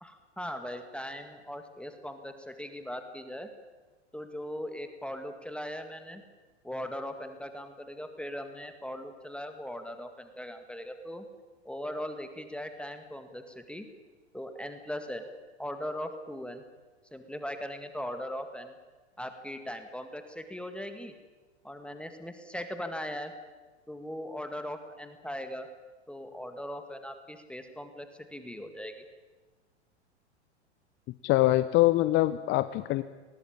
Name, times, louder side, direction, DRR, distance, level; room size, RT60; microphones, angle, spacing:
voice 1, 0.0-3.5 4.1-6.2 6.6-11.3 11.6-13.9 14.3-15.2 15.6-16.6 17.1-18.7 19.2-21.1 21.6-23.3 23.9-25.7 26.1-29.0, equal, 5° left, 7 dB, 2.1 m, -39 dB
voice 2, 31.2-33.0, left 16 dB, 35° left, 14 dB, 0.8 m, -24 dB
20.0 x 20.0 x 8.9 m, 1.3 s
hypercardioid pair, 95°, 34 cm